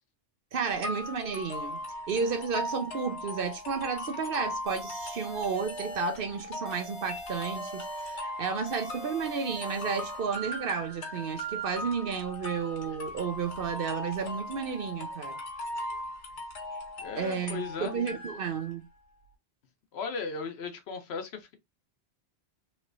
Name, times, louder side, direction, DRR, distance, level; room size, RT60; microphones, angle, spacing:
voice 1, 0.5-1.8 2.1-15.4 17.2-18.8, right 5 dB, 60° right, 0.7 m, -32 dB
sound 1, 0.8-18.7, left 1 dB, 85° left, 1.2 m, -39 dB
sound 2, 4.7-6.2 6.7-8.2 8.7-10.2, right 1 dB, 30° left, 1.0 m, -42 dB
voice 2, 17.0-17.9 19.9-21.6, left 5 dB, 70° left, 0.9 m, -36 dB
3.1 x 2.9 x 2.5 m
omnidirectional pair, 1.2 m